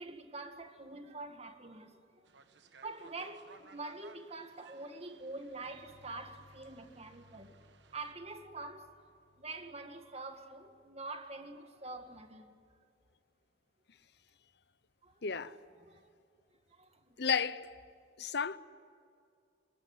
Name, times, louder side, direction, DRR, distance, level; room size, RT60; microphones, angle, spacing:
voice 1, 0.0-2.3 2.8-7.6 7.9-8.9 9.4-12.5 15.0-15.2 15.8-16.1 16.7-17.2, right 3 dB, 35° right, 2.0 m, -46 dB
sound 1, 2.2-8.1, right 4 dB, 65° right, 1.3 m, -60 dB
sound 2, 5.6-11.2, left 2 dB, 85° left, 5.2 m, -65 dB
voice 2, 15.2-15.6 17.2-17.9 18.2-18.6, left 6 dB, 60° left, 0.8 m, -33 dB
26.5 x 20.5 x 9.7 m
head